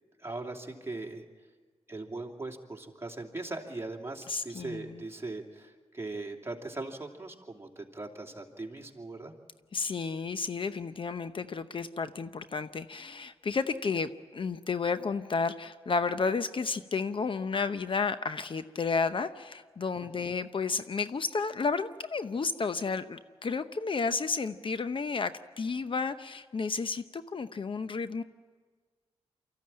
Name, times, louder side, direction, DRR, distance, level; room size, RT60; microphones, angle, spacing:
voice 1, 0.2-1.2 1.9-9.3 20.0-20.3, right 2 dB, 25° right, 1 dB, 2.8 m, -40 dB
voice 2, 4.3-5.0 9.7-25.3 25.6-28.2, left 4 dB, 50° left, 11 dB, 0.8 m, -32 dB
24.5 x 14.5 x 8.8 m, 1.5 s
cardioid pair, 60°, 11 cm